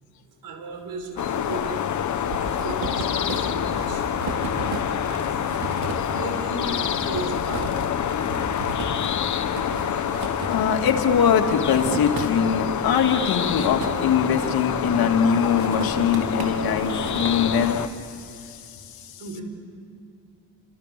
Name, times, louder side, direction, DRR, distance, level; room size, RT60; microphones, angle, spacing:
voice 1, 0.4-1.8 2.2-5.5 6.1-8.4 19.2-19.4, right 3 dB, 70° right, 4 dB, 5.5 m, -37 dB
sound 1, 1.0-1.6 1.9-12.6 13.0-14.8 15.3-18.0, right 4 dB, 90° right, 4.4 m, -35 dB
sound 2, 1.2-17.9, left 9 dB, 55° left, 1.1 m, -27 dB
voice 2, 10.5-18.8, left 7 dB, 80° left, 4 dB, 2.5 m, -22 dB
29.0 x 25.5 x 6.9 m, 2.6 s
cardioid pair, 135°, 36 cm